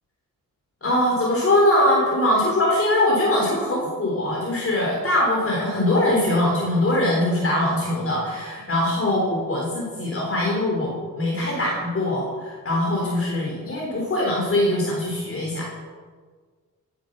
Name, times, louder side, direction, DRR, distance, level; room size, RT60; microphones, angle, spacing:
voice 1, 0.8-15.7, left 1 dB, 45° left, -3 dB, 3.8 m, -22 dB
17.0 x 10.5 x 6.6 m, 1.5 s
wide cardioid pair, 125°, 32 cm